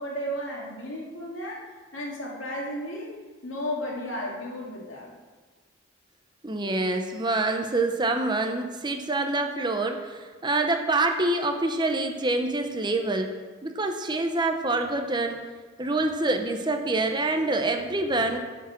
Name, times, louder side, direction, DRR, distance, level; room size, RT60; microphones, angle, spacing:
voice 1, 0.0-3.1 3.4-5.1, equal, 80° left, -2 dB, 2.5 m, -34 dB
voice 2, 6.4-13.3 13.6-15.4 15.8-18.4, right 2 dB, 25° right, 5 dB, 0.8 m, -26 dB
12.0 x 6.1 x 6.0 m, 1.4 s
head